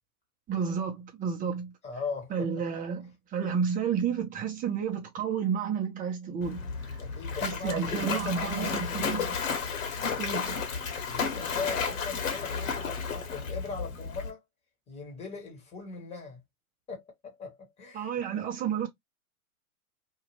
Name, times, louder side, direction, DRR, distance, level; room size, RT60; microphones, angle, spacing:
voice 1, 0.5-1.7 2.3-6.6 7.4-9.4 10.2-10.6 17.9-18.9, right 7 dB, 20° right, 0.9 m, -31 dB
voice 2, 1.8-2.5 7.0-9.1 11.1-14.4 14.9-16.4 16.9-18.1, left 5 dB, 15° left, 1.3 m, -39 dB
Splash splatter, 6.4-14.3, left 5 dB, 60° left, 1.3 m, -33 dB
2.8 x 2.5 x 3.1 m
hypercardioid pair, 125°, 44 cm